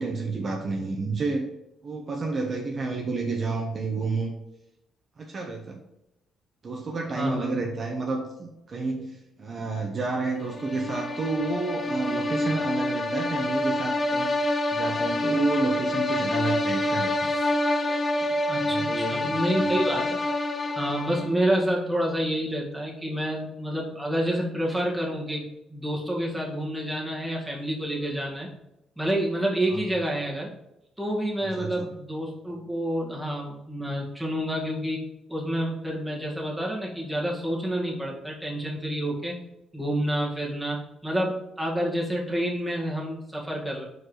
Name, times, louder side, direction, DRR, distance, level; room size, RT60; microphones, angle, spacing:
voice 1, 0.0-1.5 1.8-4.3 5.2-5.8 6.6-14.4 14.7-17.1 18.2-18.4 18.6-19.4 19.6-19.8 29.7-29.8 31.6-31.9, right 3 dB, 45° right, 1 dB, 1.0 m, -30 dB
voice 2, 7.1-7.5 18.5-20.2 20.8-28.5 29.0-30.5 31.0-35.0 35.3-39.4 39.7-40.8 41.0-43.8, right 1 dB, 5° right, -4 dB, 1.9 m, -28 dB
sound 1, 10.5-21.5, left 1 dB, 35° left, 0.8 m, -27 dB
4.8 x 4.6 x 4.6 m, 0.86 s
cardioid pair, 90°, 0 cm